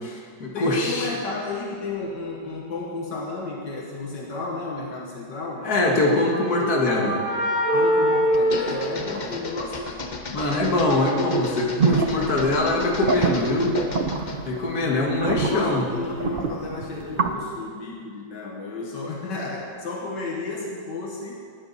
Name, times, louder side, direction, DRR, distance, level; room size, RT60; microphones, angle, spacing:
voice 1, 0.0-1.1 5.6-7.2 10.3-13.7 14.5-15.9, left 2 dB, 60° left, -1 dB, 2.3 m, -23 dB
voice 2, 0.5-5.7 7.7-9.9 14.8-21.4, left 3 dB, 80° left, -1 dB, 2.1 m, -32 dB
sound 1, 5.7-9.6, equal, 85° right, 5.7 m, -24 dB
sound 2, 8.3-14.5, left 3 dB, 35° left, 0.7 m, -34 dB
sound 3, 11.8-17.3, right 5 dB, 50° right, 0.7 m, -27 dB
18.5 x 12.0 x 4.2 m, 2.1 s
omnidirectional pair, 1.9 m